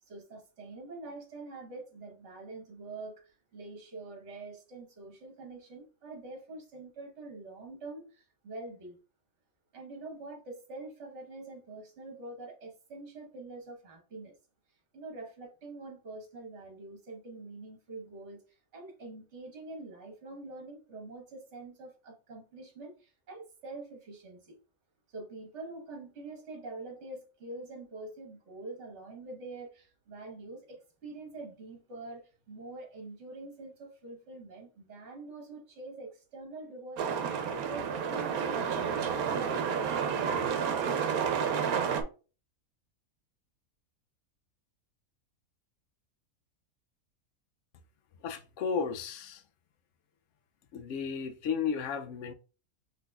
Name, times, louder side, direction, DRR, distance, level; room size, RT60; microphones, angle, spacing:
voice 1, 0.0-9.0 9.7-14.3 14.9-24.6 25.1-38.6 39.1-40.7, right 2 dB, 55° right, 1.5 m, -45 dB
sound 1, 37.0-42.0, right 7 dB, 85° right, 1.1 m, -30 dB
voice 2, 48.2-49.4 50.7-52.3, left 6 dB, 65° left, 0.8 m, -33 dB
5.8 x 3.4 x 2.3 m
omnidirectional pair, 1.5 m